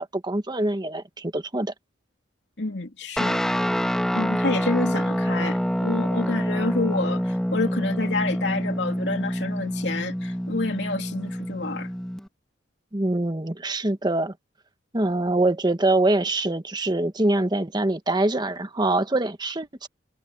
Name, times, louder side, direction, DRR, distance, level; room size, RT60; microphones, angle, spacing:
voice 1, 0.0-1.7 12.9-14.3 14.9-19.9, right 2 dB, 25° right, 1.2 m, -24 dB
voice 2, 2.6-3.4 4.1-11.9, left 3 dB, 70° left, 2.9 m, -29 dB
Guitar, 3.2-12.3, equal, 5° left, 1.6 m, -26 dB
head